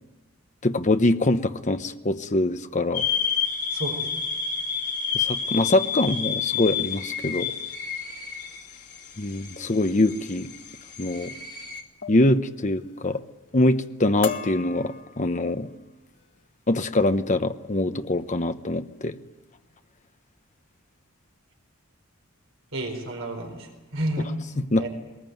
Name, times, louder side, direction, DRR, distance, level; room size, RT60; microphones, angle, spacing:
voice 1, 0.6-3.0 5.1-7.5 9.2-10.5 11.0-11.3 12.1-13.2 13.5-15.7 16.7-19.2 24.7-24.9, left 2 dB, 35° left, 9 dB, 0.8 m, -23 dB
sound 1, 2.9-11.8, left 7 dB, 90° left, 2.6 m, -30 dB
voice 2, 3.7-4.1 22.7-24.3 24.8-24.9, right 1 dB, 60° right, 2 dB, 4.3 m, -31 dB
sound 2, 11.0-11.3 12.0-12.4 12.7-13.2 13.6-13.9 14.2-15.6 16.2-16.4 16.8-17.1, left 6 dB, 50° left, 2.0 m, -37 dB
22.0 x 20.0 x 9.2 m, 1.2 s
head